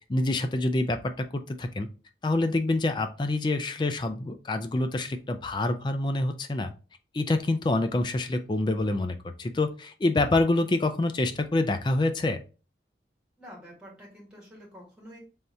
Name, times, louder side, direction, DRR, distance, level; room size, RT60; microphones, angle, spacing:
voice 1, 0.1-1.9 2.2-6.7 7.1-12.4, left 2 dB, 25° left, 7 dB, 0.3 m, -26 dB
voice 2, 13.4-15.2, equal, 5° right, -4 dB, 1.6 m, -48 dB
3.5 x 2.7 x 4.2 m, 0.34 s
head